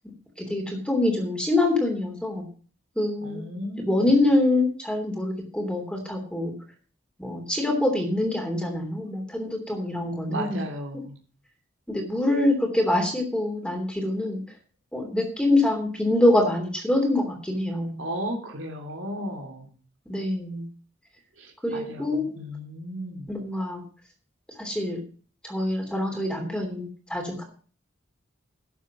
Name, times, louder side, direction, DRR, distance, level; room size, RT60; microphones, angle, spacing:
voice 1, 0.4-2.4 3.0-3.4 3.8-6.5 7.2-10.6 11.9-14.4 14.9-18.0 20.1-20.6 21.6-22.4 23.3-23.8 24.6-25.0 25.4-27.4, left 1 dB, 5° left, 2 dB, 3.1 m, -25 dB
voice 2, 3.2-4.1 10.3-11.2 18.0-19.7 21.4-23.3, equal, 80° right, 1 dB, 3.1 m, -35 dB
12.0 x 7.3 x 6.2 m, 0.40 s
head